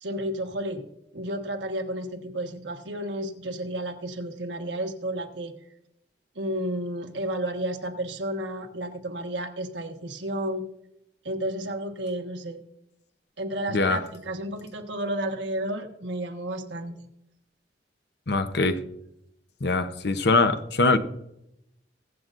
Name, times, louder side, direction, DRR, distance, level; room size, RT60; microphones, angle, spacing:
voice 1, 0.0-5.5 6.3-10.6 11.2-12.6 13.4-17.0, right 1 dB, 85° right, 1.4 m, -32 dB
voice 2, 13.7-14.0 18.3-18.8 19.6-21.0, left 3 dB, 65° left, 0.8 m, -22 dB
22.0 x 7.8 x 2.6 m
head